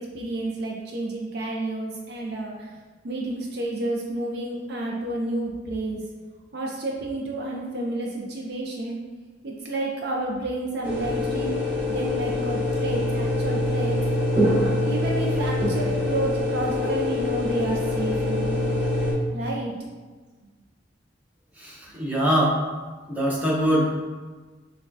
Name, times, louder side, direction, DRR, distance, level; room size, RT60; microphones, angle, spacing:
voice 1, 0.0-2.7 3.0-6.0 6.5-9.0 9.4-11.5 11.9-14.0 14.8-18.6 19.3-19.7, right 2 dB, 60° right, -1 dB, 0.5 m, -30 dB
sound 1, 10.8-19.1, left 1 dB, 25° right, 1.5 m, -24 dB
voice 2, 21.6-22.6 23.1-24.0, equal, 10° right, -5 dB, 0.7 m, -23 dB
5.9 x 2.2 x 2.6 m, 1.3 s
head